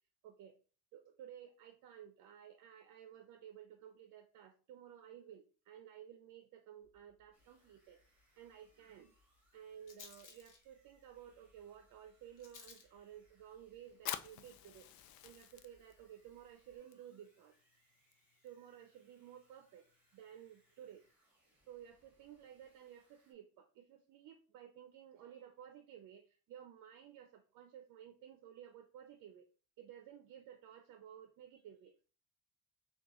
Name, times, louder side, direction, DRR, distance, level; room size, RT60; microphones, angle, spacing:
voice 1, 0.2-0.6 0.9-8.0 8.4-9.1 9.5-14.9 15.2-17.5 18.4-19.9 20.1-21.0 21.7-29.5 29.8-32.0, right 9 dB, 60° right, 6 dB, 0.5 m, -55 dB
Rattle, 6.8-16.8, left 5 dB, 55° left, 1.0 m, -64 dB
sound 1, 7.3-23.3, right 1 dB, 5° right, 1.5 m, -76 dB
Fire, 13.9-21.1, left 12 dB, 75° left, 0.5 m, -51 dB
6.0 x 2.4 x 2.9 m, 0.37 s
cardioid pair, 145°, 37 cm